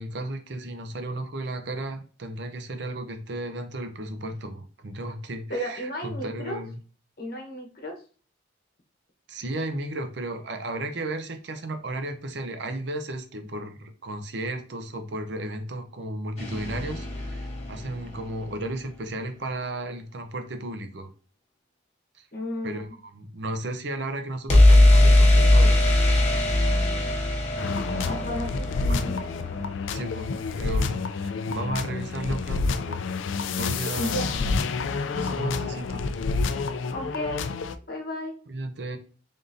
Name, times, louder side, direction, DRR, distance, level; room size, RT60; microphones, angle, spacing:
voice 1, 0.0-6.8 9.3-21.1 22.2-22.3 22.6-25.8 28.9-29.1 29.9-33.0 33.5-34.6 35.1-36.1 38.5-39.0, right 1 dB, 65° right, 7 dB, 0.6 m, -34 dB
voice 2, 5.5-6.6 7.2-7.9 22.3-22.9 28.0-29.2 33.9-34.2 36.9-37.5 37.9-38.3, equal, 50° left, 0 dB, 1.1 m, -33 dB
sound 1, 16.4-18.4 24.5-30.3, left 1 dB, 35° left, 1.0 m, -20 dB
sound 2, 27.6-37.8, left 4 dB, 85° left, 0.4 m, -29 dB
3.7 x 3.6 x 2.6 m, 0.38 s
head